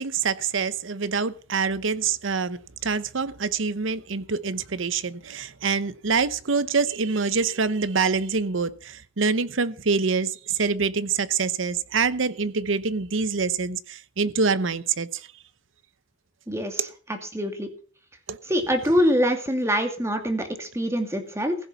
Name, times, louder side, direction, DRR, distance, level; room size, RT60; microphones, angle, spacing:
voice 1, 0.0-15.3 16.8-16.9 18.3-18.4, right 5 dB, 70° right, 0.8 m, -25 dB
voice 2, 16.5-17.7 18.5-21.6, equal, 15° right, 2.4 m, -25 dB
15.5 x 7.0 x 5.8 m
head